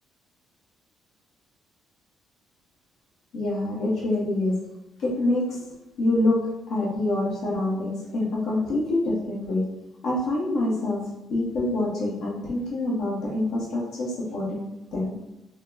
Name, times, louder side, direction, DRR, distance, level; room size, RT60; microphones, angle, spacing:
voice 1, 3.3-4.7 5.0-5.6 6.0-9.7 10.0-14.6 14.9-15.2, left 2 dB, 65° left, -4 dB, 1.0 m, -26 dB
3.7 x 2.1 x 3.4 m, 0.96 s
cardioid pair, 170°, 0 cm